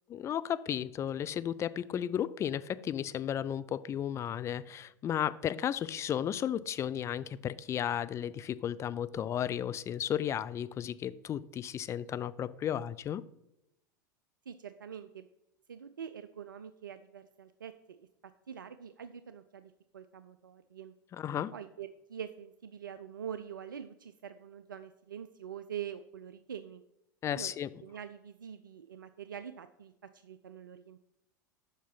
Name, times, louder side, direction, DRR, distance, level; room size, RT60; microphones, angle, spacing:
voice 1, 0.1-13.2 21.1-21.5 27.2-27.7, left 10 dB, 25° left, 14 dB, 0.4 m, -34 dB
voice 2, 14.5-15.3 15.7-20.9 21.5-26.8 27.3-27.5 27.8-31.0, right 8 dB, 80° right, 11 dB, 0.4 m, -45 dB
7.3 x 5.6 x 5.7 m, 0.86 s
figure-of-eight pair, 85°, 11 cm